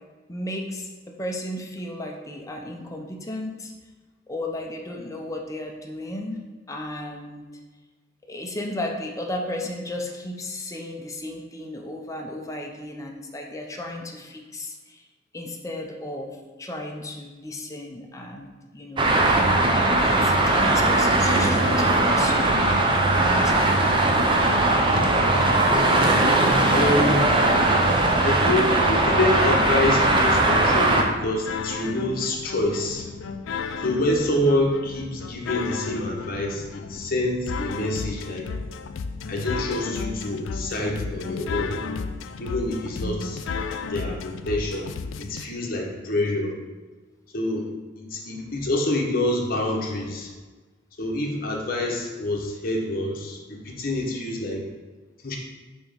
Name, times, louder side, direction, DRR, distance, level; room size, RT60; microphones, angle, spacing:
voice 1, 0.3-3.7 4.3-6.4 6.7-7.4 8.2-15.0 15.3-19.6 20.1-22.6 23.0-24.1 43.0-43.3, left 1 dB, 15° left, 1 dB, 0.6 m, -34 dB
Traffic noise roadway noise, 19.0-31.0, right 2 dB, 25° right, 0.6 m, -19 dB
voice 2, 25.9-26.4 26.7-27.4 28.2-33.1 33.8-38.5 39.3-41.8 42.4-43.4 43.9-46.5 47.3-47.7 48.0-50.3 51.0-54.6 55.2-55.4, left 1 dB, 50° left, -1 dB, 1.1 m, -26 dB
sound 1, 29.5-45.5, left 5 dB, 85° left, 0.4 m, -34 dB
6.2 x 3.0 x 5.1 m, 1.3 s
head